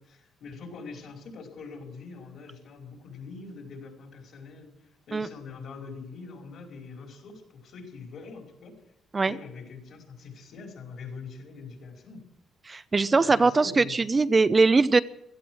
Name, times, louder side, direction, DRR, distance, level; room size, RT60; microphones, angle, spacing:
voice 1, 0.0-8.7 9.3-12.2 13.1-14.0, left 4 dB, 70° left, 1 dB, 5.1 m, -43 dB
voice 2, 12.7-15.0, right 3 dB, 30° right, 13 dB, 0.6 m, -21 dB
16.5 x 13.0 x 6.3 m, 0.78 s
cardioid pair, 90°, 0 cm